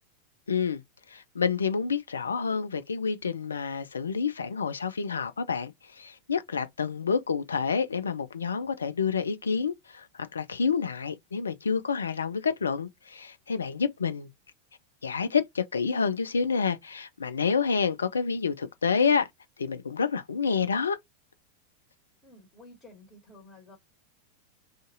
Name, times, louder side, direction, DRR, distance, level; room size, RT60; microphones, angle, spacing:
voice 1, 0.5-0.8 1.1-14.3 15.0-19.3 19.6-21.0, left 5 dB, 70° left, 0.4 m, -28 dB
voice 2, 22.2-23.8, left 2 dB, 20° left, 1.4 m, -52 dB
2.5 x 2.5 x 3.9 m
figure-of-eight pair, 90°, 0 cm